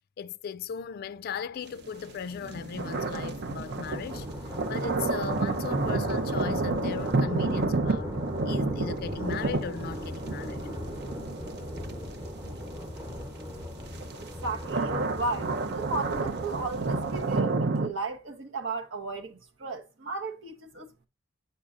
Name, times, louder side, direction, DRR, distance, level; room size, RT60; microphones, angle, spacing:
voice 1, 0.2-4.3 4.7-8.1 8.5-10.6, left 7 dB, 50° left, 0.3 m, -37 dB
sound 1, 1.5-17.8, left 1 dB, 15° right, 1.0 m, -39 dB
sound 2, 1.8-13.3 13.9-17.9, right 3 dB, 55° right, 0.6 m, -30 dB
voice 2, 14.4-21.1, right 3 dB, 80° right, 1.0 m, -35 dB
8.4 x 5.5 x 2.5 m
head